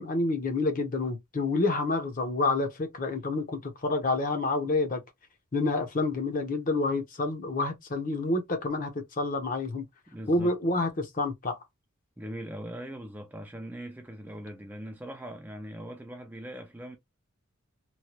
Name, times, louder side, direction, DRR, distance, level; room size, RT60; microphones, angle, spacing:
voice 1, 0.0-5.0 5.5-9.8 10.3-11.6, left 2 dB, 40° left, 0.7 m, -28 dB
voice 2, 10.1-10.5 12.2-17.0, right 1 dB, 10° right, 0.4 m, -41 dB
3.1 x 2.2 x 2.9 m
head